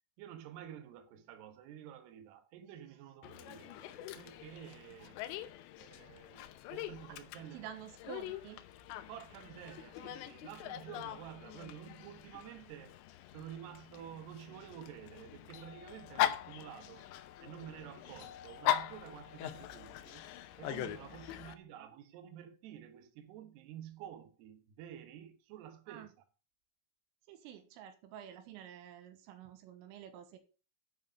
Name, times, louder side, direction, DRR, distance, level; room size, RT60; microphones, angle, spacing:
voice 1, 0.2-5.2 5.8-7.7 9.1-13.0 13.3-17.1 17.4-20.3 20.6-26.2, right 10 dB, 65° right, 2.9 m, -50 dB
Dog, 3.2-21.5, left 13 dB, 80° left, 2.6 m, -41 dB
voice 2, 7.5-8.7 21.5-22.0 25.9-26.1 27.3-30.4, right 10 dB, 85° right, 3.7 m, -50 dB
10.5 x 5.3 x 6.3 m
omnidirectional pair, 5.8 m